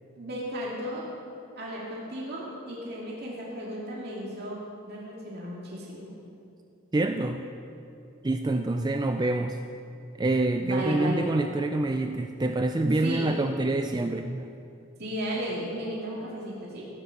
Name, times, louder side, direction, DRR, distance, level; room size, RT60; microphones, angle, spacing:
voice 1, 0.2-1.1 1.6-4.6 4.8-6.1 10.6-11.3 13.0-13.4 15.0-16.9, equal, 45° right, -5 dB, 2.3 m, -34 dB
voice 2, 6.9-7.4 8.2-9.6 10.2-14.5, right 2 dB, 20° right, 6 dB, 0.3 m, -26 dB
15.0 x 9.3 x 6.4 m, 2.6 s
head